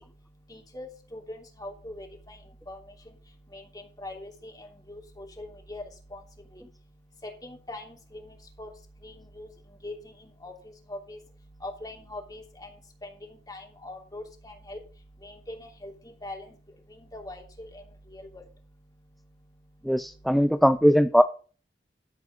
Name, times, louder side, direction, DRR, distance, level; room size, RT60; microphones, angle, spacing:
voice 1, 0.7-1.2 1.6-2.4 2.7-2.8 3.5-3.6 4.0-4.3 4.9-5.8 6.1-6.2 7.4-8.0 8.6-8.7 9.4-9.5 9.8-9.9 10.4-10.5 10.9-11.2 11.6-12.7 13.5-14.8 15.2-15.5 15.8-15.9 16.2-16.4 17.1-17.4 18.1-18.3, left 1 dB, 20° left, 1 dB, 3.0 m, -40 dB
voice 2, 19.9-21.2, equal, ahead, 10 dB, 0.4 m, -20 dB
13.5 x 4.9 x 7.1 m, 0.38 s
head